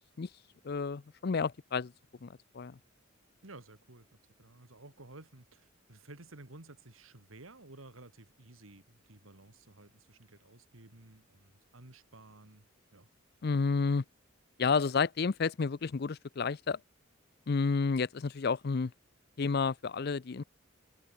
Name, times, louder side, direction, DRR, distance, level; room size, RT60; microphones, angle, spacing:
voice 1, 0.6-1.9 2.2-2.7 13.4-14.0 14.6-16.8 17.5-18.9 19.4-20.4, left 5 dB, 50° left, 0.5 m, -30 dB
voice 2, 3.4-12.7 12.9-13.1, right 2 dB, 85° right, 2.4 m, -54 dB
head